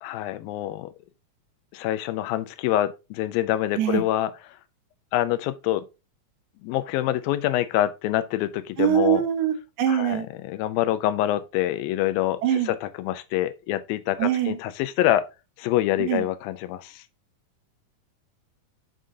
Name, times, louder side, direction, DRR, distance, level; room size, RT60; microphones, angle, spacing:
voice 1, 0.0-0.9 1.7-4.6 5.1-5.8 6.6-9.2 9.9-12.4 12.7-15.3 15.6-17.0, left 13 dB, 85° left, 2.4 m, -26 dB
voice 2, 8.8-10.3 12.4-12.7 14.2-14.6 16.0-16.2, right 10 dB, 75° right, 2.5 m, -23 dB
7.4 x 6.5 x 2.7 m
omnidirectional pair, 4.1 m